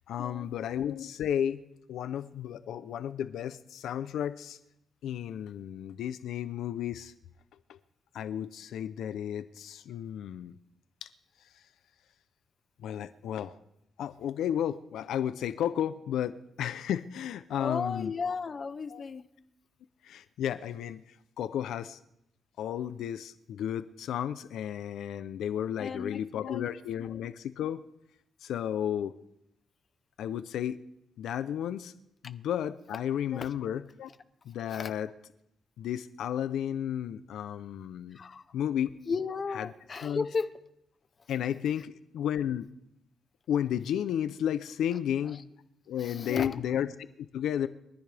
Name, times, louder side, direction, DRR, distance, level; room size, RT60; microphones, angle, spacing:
voice 1, 0.0-1.6 1.9-4.6 5.0-7.1 7.7-7.8 8.1-10.5 11.0-11.1 12.8-13.6 14.0-18.1 18.9-19.0 20.0-21.0 21.4-22.0 22.6-27.8 28.4-29.1 30.2-30.8 31.2-31.9 32.2-34.1 34.5-35.1 35.8-38.2 38.5-39.0 39.5-39.7 40.0-40.2 41.3-42.7 43.5-45.4 45.9-46.9 47.3-47.7, left 10 dB, 90° left, 13 dB, 0.6 m, -33 dB
voice 2, 17.6-19.3 25.8-26.2 26.5-26.7 33.3-33.5 34.7-34.9 38.1-38.4 39.1-40.5 45.3-45.4 46.0-46.6, left 5 dB, 35° left, 11 dB, 0.8 m, -34 dB
23.0 x 14.0 x 3.4 m, 0.81 s
cardioid pair, 150°, 0 cm